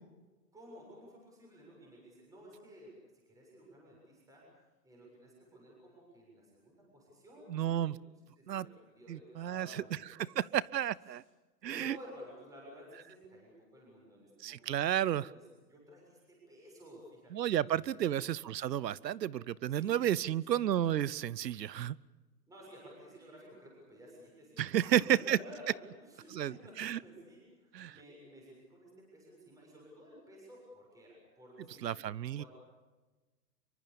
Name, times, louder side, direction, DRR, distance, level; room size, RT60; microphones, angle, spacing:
voice 1, 0.5-2.9 3.3-4.4 4.8-8.0 8.4-10.3 11.7-14.7 15.3-15.4 15.7-18.0 19.7-20.0 20.5-20.6 22.5-31.9 32.4-32.5, equal, 5° right, -2 dB, 7.1 m, -54 dB
voice 2, 7.5-8.0 8.5-8.7 9.1-9.8 10.1-11.2 11.6-12.0 14.4-15.3 17.3-22.0 24.6-25.4 26.3-27.0 27.7-28.0 31.8-32.4, right 11 dB, 85° right, 22 dB, 0.9 m, -32 dB
25.5 x 24.0 x 7.0 m, 1.2 s
hypercardioid pair, 160°, 49 cm